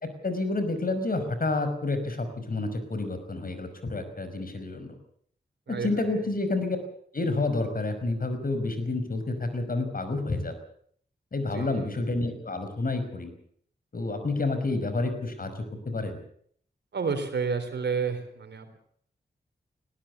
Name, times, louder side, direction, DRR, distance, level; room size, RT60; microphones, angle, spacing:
voice 1, 0.2-5.0 5.7-6.8 7.1-10.6 11.3-13.3 13.9-16.2, left 2 dB, 55° left, 9 dB, 5.4 m, -29 dB
voice 2, 5.7-6.3 11.5-11.9 16.9-18.8, right 5 dB, 80° right, 7 dB, 3.8 m, -31 dB
19.5 x 17.0 x 8.3 m, 0.63 s
cardioid pair, 45°, 18 cm